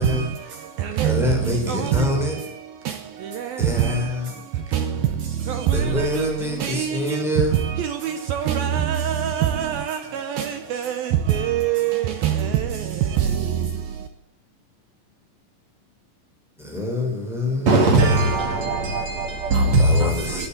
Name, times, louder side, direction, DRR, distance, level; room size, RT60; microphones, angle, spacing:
voice 1, 0.0-14.1, right 9 dB, 80° right, 2.2 m, -25 dB
voice 2, 1.0-2.4 3.6-4.3 5.7-7.5 16.6-17.8 19.8-20.5, left 2 dB, ahead, 5.3 m, -26 dB
voice 3, 17.7-20.5, right 2 dB, 45° right, 2.9 m, -19 dB
13.0 x 10.5 x 9.5 m
omnidirectional pair, 5.1 m